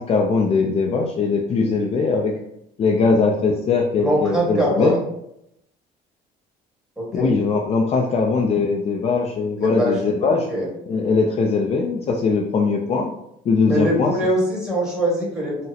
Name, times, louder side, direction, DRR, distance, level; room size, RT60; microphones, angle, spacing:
voice 1, 0.0-2.3 2.8-4.9 7.1-10.5 10.9-13.1 13.5-14.1, left 4 dB, 40° left, 1 dB, 0.4 m, -20 dB
voice 2, 4.0-5.0 7.0-7.3 9.6-9.9 10.5-10.7 13.6-15.7, right 1 dB, 5° right, -5 dB, 1.4 m, -22 dB
3.8 x 2.0 x 2.8 m, 0.80 s
cardioid pair, 110°, 17 cm